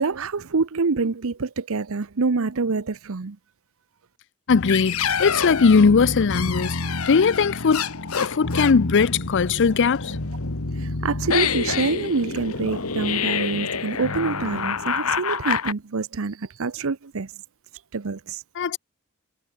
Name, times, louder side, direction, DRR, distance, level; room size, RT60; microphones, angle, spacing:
voice 1, 0.0-3.4 10.8-17.3 17.9-18.4, right 4 dB, 70° right, 0.8 m, -26 dB
sound 1, 4.5-15.7, left 5 dB, 75° left, 1.8 m, -27 dB
voice 2, 4.5-6.8 7.1-7.9 8.1-10.2 18.6-18.8, left 5 dB, 55° left, 0.5 m, -19 dB
head